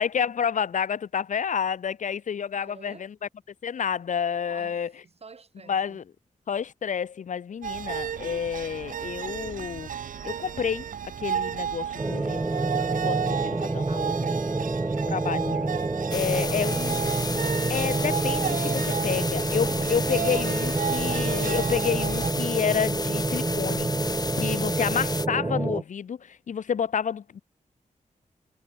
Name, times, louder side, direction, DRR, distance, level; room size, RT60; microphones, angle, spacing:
voice 1, 0.0-3.1 3.6-4.9 5.7-6.0 6.5-9.9 10.2-10.9 11.2-12.5 12.9-14.1 15.1-15.7 16.1-17.0 17.7-23.9 24.3-27.4, left 7 dB, 70° left, 0.7 m, -29 dB
voice 2, 2.5-3.1 4.5-6.0 13.4-14.8 16.1-16.8 24.5-25.0, right 5 dB, 50° right, 2.4 m, -49 dB
sound 1, 7.6-22.3, right 8 dB, 85° right, 0.6 m, -33 dB
sound 2, 12.0-25.8, right 2 dB, 20° right, 0.6 m, -28 dB
sound 3, 16.1-25.3, left 4 dB, 30° left, 0.6 m, -33 dB
wide cardioid pair, 115°, 13 cm